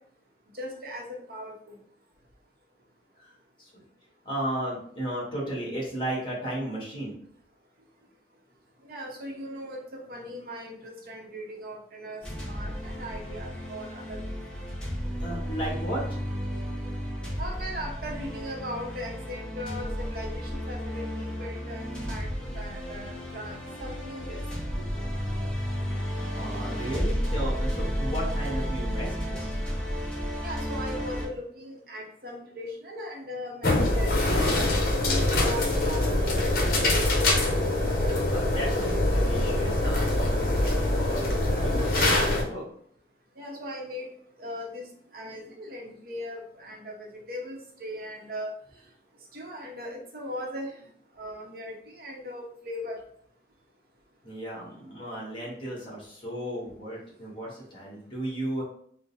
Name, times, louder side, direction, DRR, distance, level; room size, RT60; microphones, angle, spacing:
voice 1, 0.5-1.8 8.8-12.2 12.5-14.2 17.4-22.3 22.5-24.4 24.8-24.9 30.4-36.0 36.4-37.2 43.4-44.1 44.4-44.9 45.1-48.5 49.3-50.7 51.2-53.0, equal, 55° right, -1 dB, 0.7 m, -39 dB
voice 2, 4.2-7.1 15.2-16.5 26.3-29.5 38.3-42.6 54.2-58.6, right 1 dB, 25° left, -4 dB, 1.3 m, -35 dB
sound 1, 12.2-31.3, equal, 5° left, 0.8 m, -32 dB
sound 2, 33.6-42.4, left 1 dB, 50° left, 0.8 m, -24 dB
3.8 x 2.0 x 3.9 m, 0.62 s
head